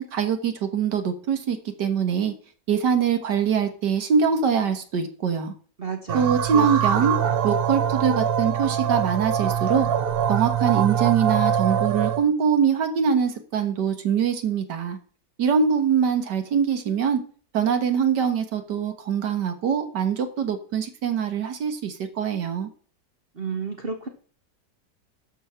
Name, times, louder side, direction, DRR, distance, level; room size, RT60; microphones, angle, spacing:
voice 1, 0.0-2.3 2.7-5.5 6.1-7.2 7.4-9.9 10.3-15.0 15.4-17.2 17.5-22.7, right 7 dB, 85° right, 1.9 m, -23 dB
voice 2, 5.8-6.7 7.2-7.3 23.3-24.1, right 4 dB, 40° right, 1.2 m, -32 dB
sound 1, 6.1-12.3, right 8 dB, 60° right, 0.6 m, -23 dB
12.5 x 5.5 x 5.6 m
omnidirectional pair, 1.8 m